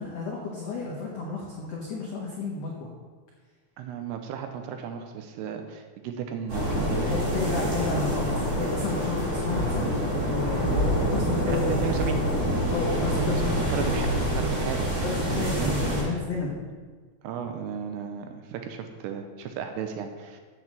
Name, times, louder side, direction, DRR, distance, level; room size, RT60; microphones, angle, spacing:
voice 1, 0.0-2.9 7.1-12.0 12.7-13.8 15.0-16.6, left 4 dB, 75° left, -3 dB, 1.5 m, -32 dB
voice 2, 3.8-7.1 11.4-12.2 12.5-12.7 12.9-13.4 13.7-14.1 14.3-15.0 15.4-15.8 16.0-16.2 17.2-20.4, right 7 dB, 75° right, 6 dB, 2.6 m, -34 dB
sound 1, 6.5-16.0, equal, 50° right, 5.2 m, -26 dB
8.2 x 6.8 x 7.4 m, 1.5 s
omnidirectional pair, 5.1 m